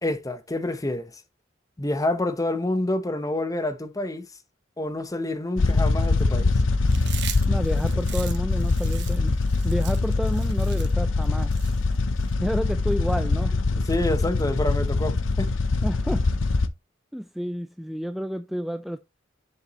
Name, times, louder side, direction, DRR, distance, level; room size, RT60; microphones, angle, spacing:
voice 1, 0.0-1.2 1.8-4.3 4.8-6.5 13.7-15.5, left 1 dB, 20° left, 0.7 m, -28 dB
sound 1, 5.6-16.7, left 3 dB, 80° left, 0.7 m, -23 dB
Chewing mastication, 6.9-12.3, right 11 dB, 65° right, 1.1 m, -40 dB
voice 2, 7.5-9.3 9.6-11.5 12.4-13.5 15.8-16.3 17.1-19.0, equal, ahead, 0.3 m, -30 dB
7.0 x 6.7 x 3.0 m
head